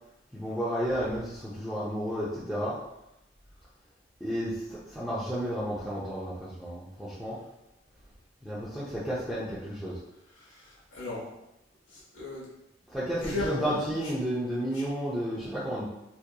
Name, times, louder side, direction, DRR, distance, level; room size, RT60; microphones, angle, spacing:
voice 1, 0.3-2.8 4.2-7.4 8.4-10.0 12.9-15.9, equal, ahead, -10 dB, 0.4 m, -32 dB
voice 2, 10.4-11.3 11.9-12.4 13.2-13.8 14.7-14.8, left 2 dB, 90° left, -5 dB, 1.0 m, -36 dB
2.8 x 2.4 x 2.2 m, 0.88 s
head